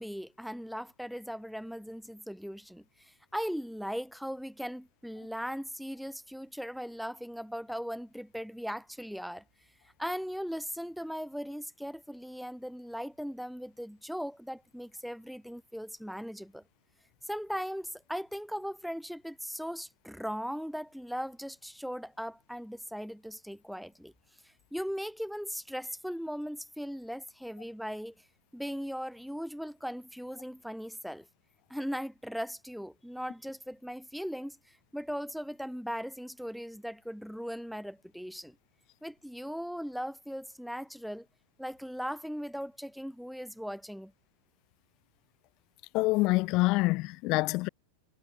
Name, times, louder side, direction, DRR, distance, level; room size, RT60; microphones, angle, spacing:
voice 1, 0.0-9.4 10.0-16.6 17.3-24.1 24.4-28.1 28.5-31.3 31.7-38.6 39.0-41.3 41.6-44.1, equal, ahead, 3.4 m, -38 dB
voice 2, 45.9-47.7, left 22 dB, 40° left, 0.4 m, -26 dB
figure-of-eight pair, 90°, 0 cm